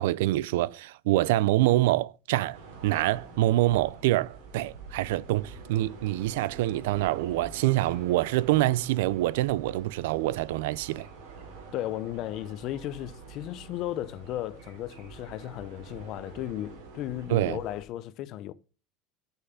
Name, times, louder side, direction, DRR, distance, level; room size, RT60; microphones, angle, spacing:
voice 1, 0.0-11.1 17.3-17.6, right 16 dB, 85° right, 0.4 m, -26 dB
sound 1, 2.5-17.8, right 4 dB, 65° right, 3.4 m, -46 dB
voice 2, 11.7-18.5, left 13 dB, 40° left, 0.6 m, -35 dB
10.0 x 5.6 x 5.8 m
cardioid pair, 180°, 0 cm